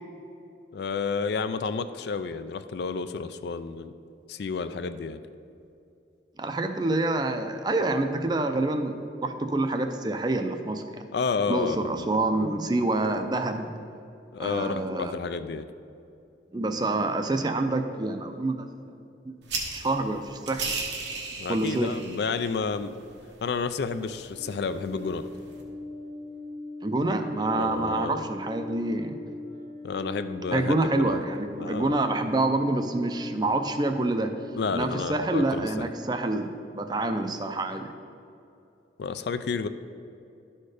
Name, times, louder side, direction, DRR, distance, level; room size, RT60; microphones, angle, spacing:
voice 1, 0.7-3.9 4.3-5.2 11.1-12.1 14.3-15.7 21.4-23.0 23.4-25.2 27.5-28.2 29.8-31.2 31.6-31.9 34.5-35.7 39.0-39.7, left 5 dB, 65° left, 11 dB, 0.4 m, -30 dB
voice 2, 6.4-8.9 9.2-11.0 11.5-13.7 14.4-15.1 16.5-18.7 19.2-19.3 19.7-20.6 21.5-21.9 26.8-29.2 30.5-34.3 34.7-37.8, right 2 dB, 25° right, 6 dB, 0.4 m, -27 dB
sound 1, 19.4-25.6, right 4 dB, 85° right, 1.3 m, -38 dB
sound 2, 24.3-34.2, left 2 dB, 20° left, 0.8 m, -40 dB
12.0 x 4.4 x 4.9 m, 2.7 s
head